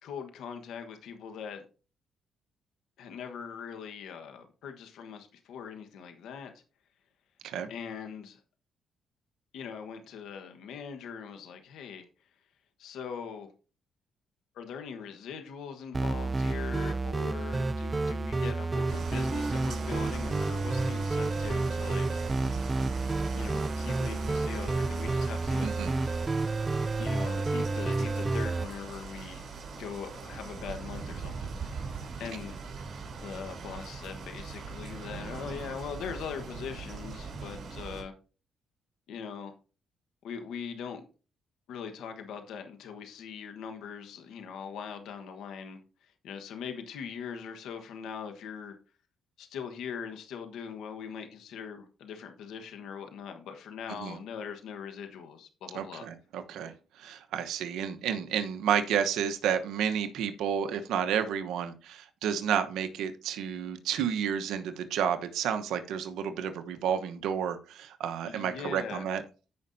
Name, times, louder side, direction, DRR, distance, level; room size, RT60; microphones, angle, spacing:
voice 1, 0.0-1.6 3.0-6.5 7.7-8.4 9.5-12.1 12.8-13.5 14.5-22.2 23.3-25.7 27.0-32.6 33.2-38.1 39.1-39.5 40.2-41.1 41.7-48.7 49.4-56.1 68.2-69.0, left 7 dB, 80° left, 1.3 m, -41 dB
sound 1, 15.9-28.7, right 3 dB, 25° right, 0.5 m, -30 dB
sound 2, 18.9-38.0, right 4 dB, 55° right, 3.5 m, -41 dB
voice 2, 25.6-25.9 54.0-54.2 55.7-56.7 57.0-69.2, right 8 dB, 85° right, 1.0 m, -31 dB
15.0 x 5.4 x 2.7 m
cardioid pair, 90°, 0 cm